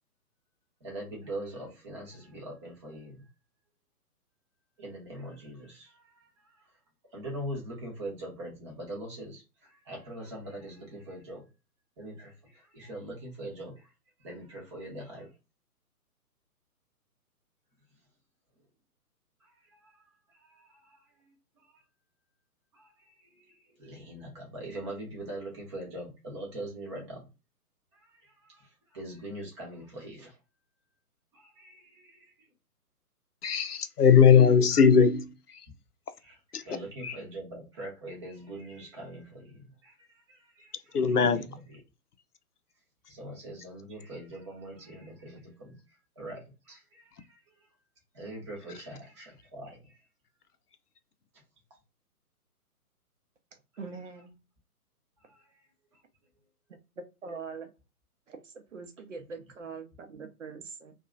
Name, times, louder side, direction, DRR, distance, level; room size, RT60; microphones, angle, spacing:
voice 1, 0.8-3.2 4.8-6.5 7.1-11.4 12.0-13.9 14.2-15.3 19.4-20.0 20.3-21.0 22.7-27.3 28.0-28.7 28.9-30.4 31.3-32.3 36.2-39.9 40.3-41.4 43.1-45.8 46.2-47.4 48.1-50.0 55.3-55.5, right 1 dB, 20° right, 0.8 m, -42 dB
voice 2, 33.4-35.7 36.5-36.6 37.0-37.2 40.9-41.5, left 6 dB, 75° left, 0.6 m, -20 dB
voice 3, 53.8-54.3 57.0-57.7 58.3-60.9, right 4 dB, 55° right, 0.7 m, -43 dB
2.7 x 2.3 x 2.4 m
figure-of-eight pair, 130°, 46 cm